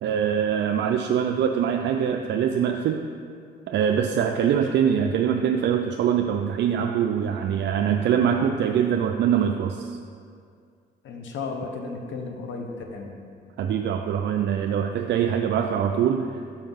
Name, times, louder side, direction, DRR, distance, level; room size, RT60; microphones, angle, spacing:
voice 1, 0.0-3.0 3.7-9.9 13.6-16.4, right 8 dB, 65° right, 4 dB, 0.4 m, -23 dB
voice 2, 11.0-13.1, left 4 dB, 75° left, 3 dB, 0.9 m, -34 dB
5.7 x 5.3 x 5.4 m, 2.2 s
cardioid pair, 90°, 20 cm